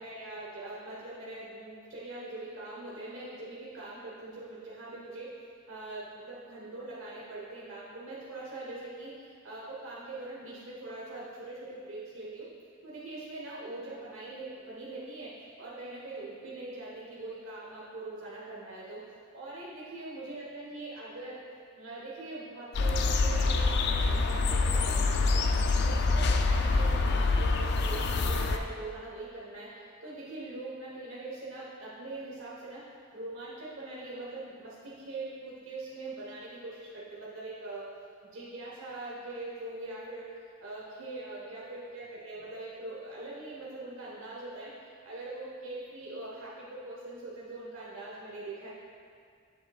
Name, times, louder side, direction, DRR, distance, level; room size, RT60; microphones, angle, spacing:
voice 1, 0.0-5.3 5.7-12.4 12.8-15.3 15.6-19.0 19.3-21.4 21.7-32.8 33.1-37.9 38.2-40.3 40.6-44.7 45.0-48.7, right 2 dB, 70° right, -7 dB, 1.2 m, -42 dB
sound 1, 22.7-28.6, left 3 dB, 55° left, 0.4 m, -26 dB
8.3 x 7.7 x 2.4 m, 2.2 s
head